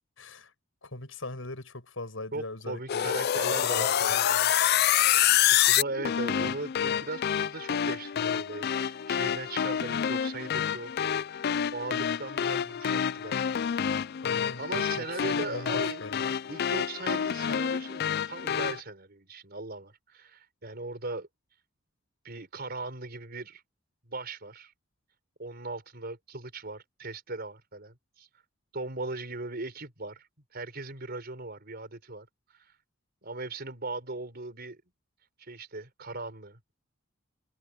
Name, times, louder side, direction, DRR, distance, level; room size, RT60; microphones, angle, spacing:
voice 1, 0.2-0.5 0.8-4.4 14.2-16.3, left 2 dB, 85° left, 6.5 m, -41 dB
voice 2, 2.3-4.5 5.0-5.1 5.5-10.9 11.7-13.3 14.6-16.0 16.5-21.3 22.2-23.6 24.0-24.7 25.4-28.3 28.7-30.3 30.5-32.3 32.6-32.7 33.2-34.8 35.4-36.8, right 2 dB, 50° right, 4.6 m, -38 dB
sound 1, 2.9-18.8, left 9 dB, 55° left, 0.4 m, -27 dB
head